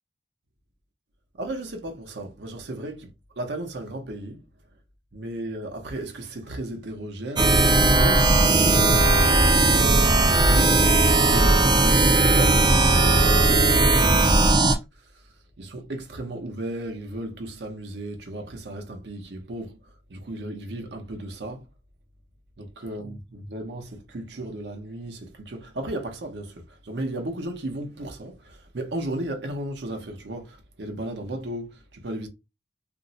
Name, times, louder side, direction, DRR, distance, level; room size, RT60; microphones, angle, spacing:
voice 1, 1.4-3.1 3.4-4.4 5.1-14.6 15.6-21.7 22.6-32.3, right 1 dB, 70° right, 0.7 m, -35 dB
sound 1, 7.4-14.7, right 2 dB, 25° right, 0.4 m, -18 dB
2.5 x 2.0 x 3.8 m
head